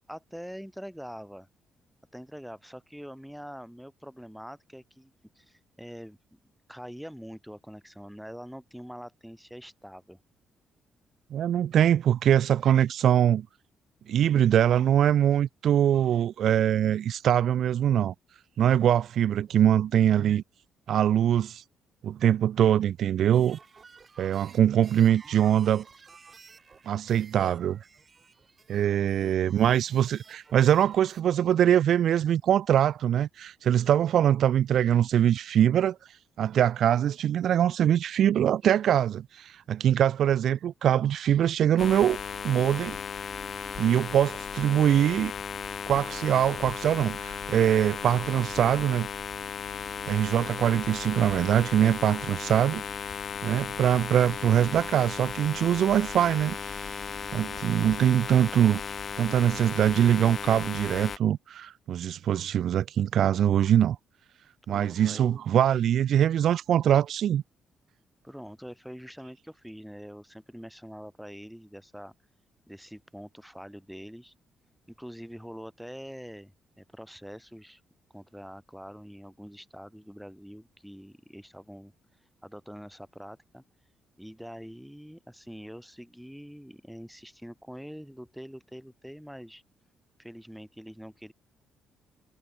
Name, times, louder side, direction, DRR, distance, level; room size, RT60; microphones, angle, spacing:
voice 1, 0.1-1.5 2.1-6.4 6.7-10.2 28.8-29.4 64.7-65.4 68.2-72.1 72.7-74.3 75.0-77.8 78.1-81.9 82.4-83.6 84.2-89.6 90.2-91.3, equal, ahead, 6.2 m, -44 dB
voice 2, 11.3-13.5 14.1-18.1 18.6-20.4 20.9-21.6 22.0-23.6 24.2-25.8 26.9-27.8 28.7-36.0 36.4-42.2 42.4-43.0 43.8-45.3 45.9-49.1 50.1-52.8 53.4-56.6 57.3-58.8 59.2-64.0 64.7-67.4, right 10 dB, 70° right, 0.5 m, -23 dB
sound 1, 23.2-31.2, right 5 dB, 35° right, 3.0 m, -54 dB
sound 2, 41.8-61.2, left 7 dB, 50° left, 1.4 m, -36 dB
cardioid pair, 90°, 0 cm